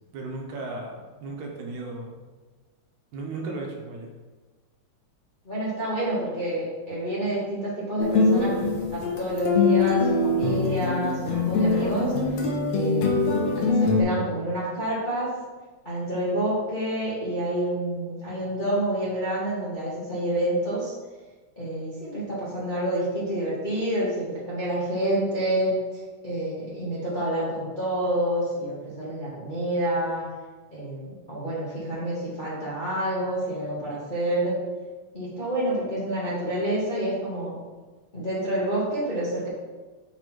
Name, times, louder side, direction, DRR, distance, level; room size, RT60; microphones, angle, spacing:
voice 1, 0.1-2.2 3.1-4.1, right 2 dB, 75° right, 0 dB, 2.3 m, -35 dB
voice 2, 5.4-12.4 12.7-13.2 13.5-15.3 15.8-20.9 21.6-30.2 30.7-34.6 35.1-37.5 38.1-39.5, right 1 dB, 25° left, -9 dB, 1.0 m, -28 dB
sound 1, 8.0-14.0, left 3 dB, 70° left, 1.9 m, -23 dB
6.9 x 4.0 x 4.6 m, 1.3 s
omnidirectional pair, 3.5 m